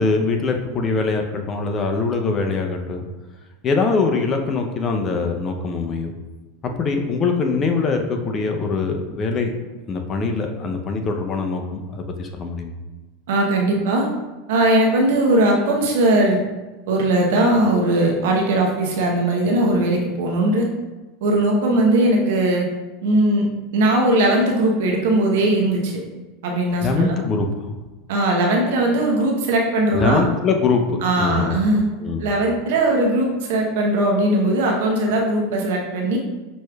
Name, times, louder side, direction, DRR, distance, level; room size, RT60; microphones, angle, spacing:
voice 1, 0.0-3.1 3.6-6.1 6.6-9.5 9.9-12.7 26.8-27.5 29.9-31.6 32.0-32.3, left 4 dB, 35° left, 4 dB, 0.6 m, -23 dB
voice 2, 13.3-14.1 14.5-16.4 16.9-20.7 21.2-22.7 23.0-23.5 23.7-25.9 26.4-27.2 28.1-30.2 31.0-31.9 32.2-36.2, right 1 dB, 70° right, 0 dB, 0.9 m, -19 dB
6.1 x 3.1 x 2.3 m, 1.2 s
hypercardioid pair, 95°, 0 cm